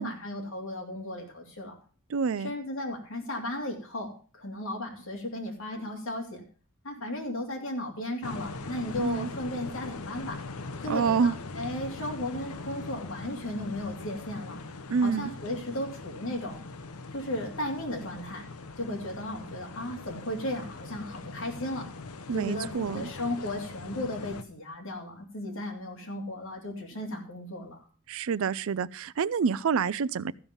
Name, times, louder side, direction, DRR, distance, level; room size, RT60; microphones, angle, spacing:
voice 1, 0.0-1.8 2.4-6.4 6.8-10.4 10.8-14.6 15.0-16.6 17.1-18.5 18.8-21.8 22.3-27.8, left 1 dB, 65° left, 3.0 m, -35 dB
voice 2, 2.1-2.5 9.0-9.3 10.9-11.4 14.9-15.3 22.3-23.0 28.1-30.3, right 6 dB, 65° right, 0.4 m, -27 dB
sound 1, 8.2-24.4, left 3 dB, 85° left, 0.9 m, -41 dB
14.0 x 5.4 x 7.0 m
head